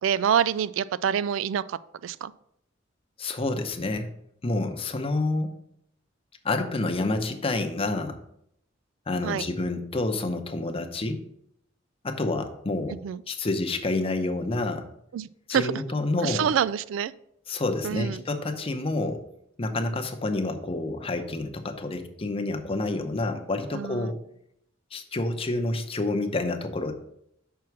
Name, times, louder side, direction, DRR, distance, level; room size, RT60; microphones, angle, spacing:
voice 1, 0.0-2.3 9.2-9.5 12.9-13.2 15.1-15.8 16.2-17.1 17.8-18.2 23.7-24.1, right 8 dB, 75° right, 17 dB, 0.3 m, -27 dB
voice 2, 3.2-4.1 4.4-5.6 6.4-8.2 9.1-11.2 12.0-13.0 13.3-14.9 15.5-16.5 17.5-19.2 19.6-24.2 24.9-26.9, left 2 dB, 30° left, 5 dB, 0.7 m, -28 dB
6.0 x 4.7 x 5.9 m, 0.74 s
head